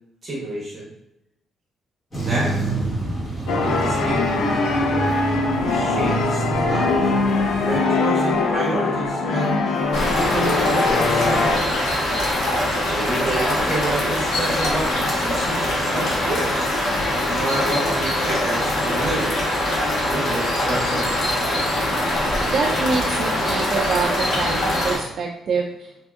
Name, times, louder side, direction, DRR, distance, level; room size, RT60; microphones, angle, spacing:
voice 1, 0.2-0.8 2.2-2.5 3.6-4.3 5.7-7.1 7.6-9.6 10.1-11.3 12.8-16.5 17.2-19.3 20.1-21.1, right 2 dB, 35° right, -5 dB, 0.9 m, -28 dB
sound 1, 2.1-7.8, right 2 dB, 25° left, 1.2 m, -28 dB
sound 2, 3.5-11.6, left 3 dB, 85° left, 0.4 m, -22 dB
sound 3, 9.9-24.9, left 1 dB, 60° left, 1.1 m, -23 dB
voice 2, 22.5-24.1 24.4-26.1, right 4 dB, 50° right, -1 dB, 0.3 m, -25 dB
3.5 x 2.5 x 2.4 m, 0.87 s
cardioid pair, 145°, 0 cm